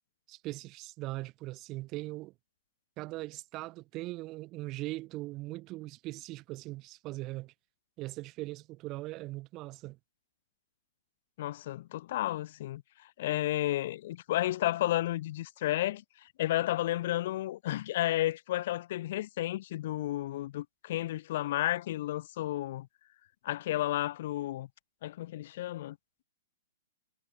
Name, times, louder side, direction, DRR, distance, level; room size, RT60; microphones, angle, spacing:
voice 1, 0.3-2.3 3.0-7.5 8.0-10.0, right 19 dB, 35° right, 0.3 m, -40 dB
voice 2, 11.4-12.8 13.2-22.9 23.4-24.7 25.0-26.0, left 14 dB, 55° left, 0.4 m, -32 dB
hypercardioid pair, 120°, 0 cm